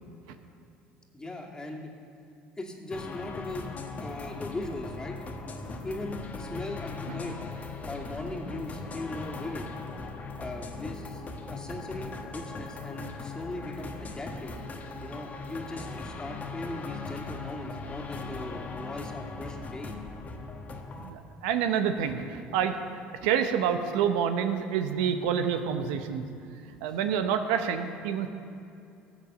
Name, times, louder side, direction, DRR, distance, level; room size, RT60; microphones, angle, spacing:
voice 1, 1.1-1.9 2.6-5.2 5.8-7.4 7.9-9.7 10.4-11.2 11.5-14.5 15.0-19.9, left 2 dB, 15° left, 0 dB, 2.4 m, -39 dB
sound 1, 2.9-21.1, left 3 dB, 35° left, 1.4 m, -39 dB
voice 2, 21.0-22.8 23.2-26.3 26.8-28.3, right 8 dB, 80° right, 7 dB, 0.8 m, -28 dB
15.0 x 7.3 x 6.7 m, 2.6 s
hypercardioid pair, 75°, 4 cm